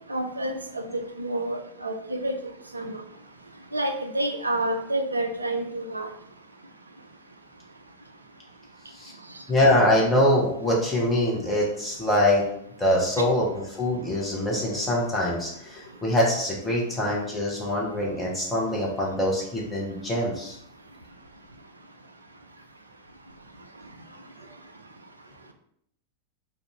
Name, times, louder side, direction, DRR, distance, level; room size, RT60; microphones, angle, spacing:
voice 1, 0.1-2.3 2.7-3.0 3.7-6.1, right 1 dB, 80° right, 5 dB, 0.3 m, -29 dB
voice 2, 9.5-12.4 12.8-20.6, left 1 dB, 10° left, -4 dB, 0.8 m, -24 dB
2.5 x 2.3 x 2.9 m, 0.70 s
figure-of-eight pair, 90°, 0 cm